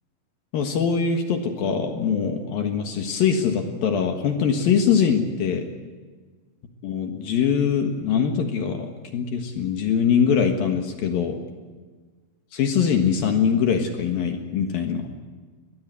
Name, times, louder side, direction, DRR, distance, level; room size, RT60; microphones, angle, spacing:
voice 1, 0.5-5.7 6.8-11.4 12.5-15.1, left 7 dB, 65° left, 4 dB, 2.8 m, -23 dB
21.5 x 19.5 x 8.2 m, 1.4 s
omnidirectional pair, 5.4 m